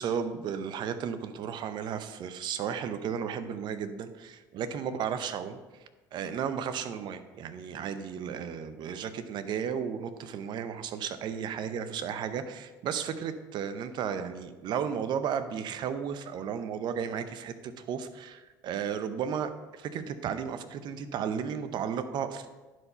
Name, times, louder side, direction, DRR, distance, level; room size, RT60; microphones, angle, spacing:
voice 1, 0.0-5.6 6.1-22.5, right 7 dB, 55° right, 11 dB, 0.7 m, -34 dB
11.0 x 4.6 x 4.3 m, 1.2 s
hypercardioid pair, 75°, 9 cm